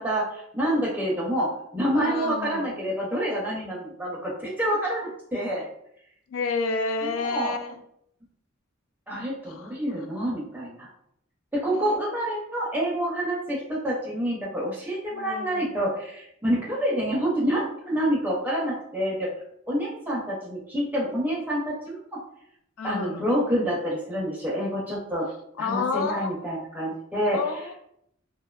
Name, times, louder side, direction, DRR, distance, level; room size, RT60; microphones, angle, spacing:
voice 1, 0.0-5.6 7.0-7.6 9.1-10.9 11.5-19.3 19.7-22.2 22.8-25.3 25.6-27.4, equal, 10° right, -4 dB, 0.4 m, -27 dB
voice 2, 1.9-2.8 6.3-7.8 9.5-10.1 11.7-12.0 15.1-15.8 22.8-23.3 25.6-26.4 27.3-27.8, left 4 dB, 80° left, 6 dB, 0.3 m, -30 dB
2.5 x 2.1 x 2.2 m, 0.73 s
head